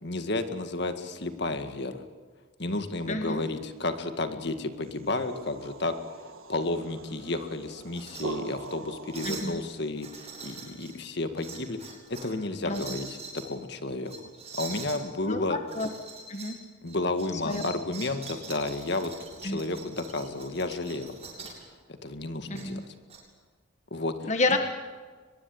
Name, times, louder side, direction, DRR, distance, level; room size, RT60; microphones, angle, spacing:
voice 1, 0.0-2.0 2.6-5.9 6.5-14.1 14.5-15.6 16.8-19.1 19.4-21.2 22.0-22.8 23.9-24.6, left 2 dB, 55° left, 8 dB, 1.9 m, -32 dB
voice 2, 3.0-3.4 9.2-9.6 12.6-13.0 15.2-15.9 16.3-16.6 17.3-17.7 19.4-19.6 22.5-22.8 24.2-24.6, left 2 dB, 35° left, 5 dB, 1.4 m, -30 dB
sound 1, 4.9-9.9, right 3 dB, 85° right, 1.7 m, -42 dB
sound 2, 7.9-8.2 8.6-8.8 9.1-9.5 10.0-10.9 11.4-12.3 12.7-13.5 14.1-15.0 15.7-16.6 16.9-21.6 22.5-23.2, right 5 dB, 30° right, 7.3 m, -43 dB
23.5 x 21.5 x 8.6 m, 1.4 s
head